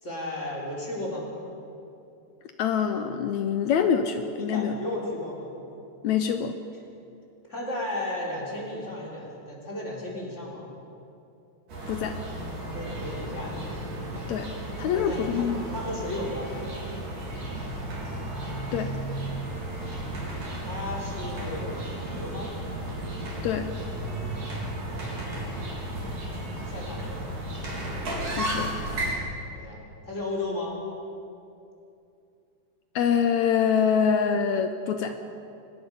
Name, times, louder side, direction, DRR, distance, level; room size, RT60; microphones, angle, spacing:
voice 1, 0.0-1.3 4.4-5.5 7.5-10.7 12.7-13.6 14.9-15.5 15.7-16.6 20.6-22.5 26.7-27.2 29.5-30.8, left 1 dB, 20° left, -4 dB, 4.4 m, -34 dB
voice 2, 2.6-4.7 6.0-6.6 11.9-12.2 14.3-14.5 14.8-15.7 18.7-19.0 23.4-23.7 28.3-28.7 33.0-35.1, left 7 dB, 75° left, 7 dB, 2.0 m, -25 dB
sound 1, 11.7-29.1, right 1 dB, 80° right, 5.5 m, -34 dB
24.0 x 19.5 x 5.6 m, 2.7 s
omnidirectional pair, 3.5 m